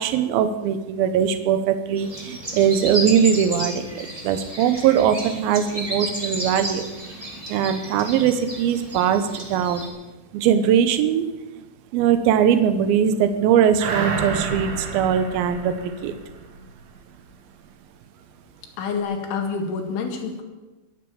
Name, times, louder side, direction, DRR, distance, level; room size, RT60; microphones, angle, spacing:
voice 1, 0.0-6.9 7.5-9.9 10.3-11.3 11.9-16.1, right 8 dB, 90° right, 9 dB, 2.1 m, -21 dB
sound 1, 2.0-9.9, right 1 dB, 15° right, 1.2 m, -33 dB
sound 2, 13.8-16.7 17.1-17.2, right 4 dB, 60° right, 3.3 m, -29 dB
voice 2, 18.8-20.4, left 5 dB, 80° left, 3 dB, 4.3 m, -27 dB
21.5 x 7.8 x 7.1 m, 1.1 s
omnidirectional pair, 5.5 m